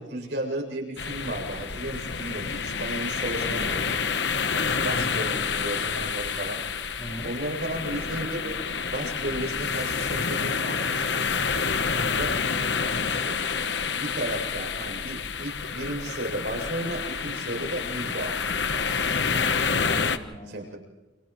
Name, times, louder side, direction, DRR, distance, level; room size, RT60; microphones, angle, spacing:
voice 1, 0.0-4.0 4.8-6.6 6.9-8.5 8.9-11.3 12.1-12.4 13.1-13.4 13.8-19.0 19.7-19.8 20.5-20.8, right 1 dB, 65° right, 0 dB, 7.5 m, -34 dB
sound 1, 1.0-20.2, left 5 dB, 70° left, 1.1 m, -28 dB
voice 2, 4.5-5.3 7.0-7.3 11.9-12.3 19.0-19.6 19.8-20.6, equal, 35° left, 0 dB, 5.5 m, -40 dB
29.5 x 29.0 x 3.2 m, 1.1 s
head